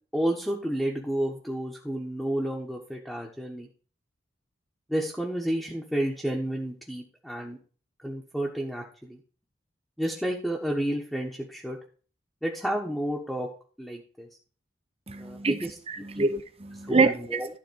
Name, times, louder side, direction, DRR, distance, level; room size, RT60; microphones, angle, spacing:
voice 1, 0.1-3.7 4.9-7.6 8.0-9.2 10.0-11.8 12.4-13.5 13.8-14.3 15.2-15.7 16.1-16.3 16.9-17.5, right 1 dB, ahead, 1.1 m, -31 dB
voice 2, 15.1-17.4, right 3 dB, 30° right, 0.7 m, -26 dB
12.0 x 4.1 x 6.3 m
head